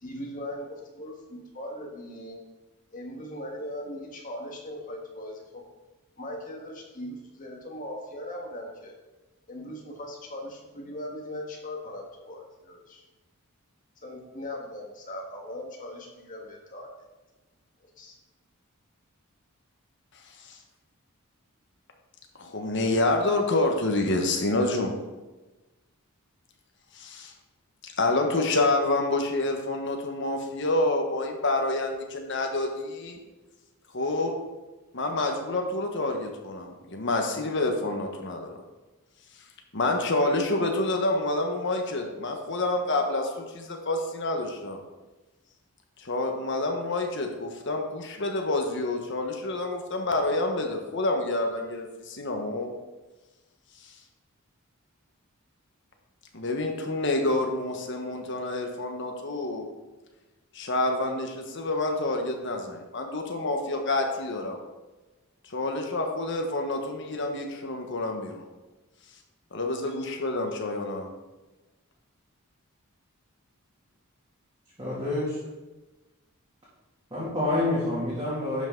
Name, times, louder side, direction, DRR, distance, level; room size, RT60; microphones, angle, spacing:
voice 1, 0.0-2.4 2.9-5.6 6.2-8.9 9.5-13.0 14.0-16.9 17.8-18.1, left 1 dB, 40° left, -1 dB, 1.7 m, -39 dB
voice 2, 22.4-25.0 26.9-27.3 27.8-33.2 33.9-34.3 34.9-38.5 39.7-44.8 46.0-52.7 53.8-53.9 56.3-59.7 60.5-64.6 65.5-68.4 69.5-71.1, left 2 dB, 55° left, 3 dB, 1.3 m, -28 dB
voice 3, 74.8-75.4 77.1-78.6, left 2 dB, 20° right, -10 dB, 2.5 m, -27 dB
11.5 x 5.7 x 3.9 m, 1.2 s
head